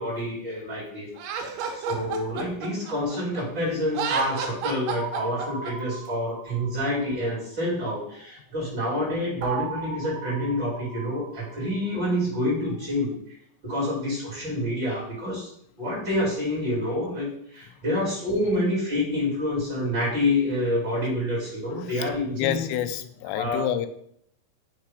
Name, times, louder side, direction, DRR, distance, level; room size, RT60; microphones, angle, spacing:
voice 1, 0.0-1.4 1.7-13.4 13.6-15.5 15.8-22.7 23.3-23.7, left 1 dB, 35° right, -7 dB, 2.3 m, -27 dB
Laughter, 1.2-3.4 3.9-5.7, right 5 dB, 90° right, 3.2 m, -31 dB
sound 1, 4.9-7.7 9.4-12.2, right 5 dB, 75° right, 2.9 m, -38 dB
voice 2, 21.7-23.9, left 11 dB, 85° left, 9 dB, 2.6 m, -29 dB
6.5 x 3.3 x 4.9 m, 0.69 s
omnidirectional pair, 5.1 m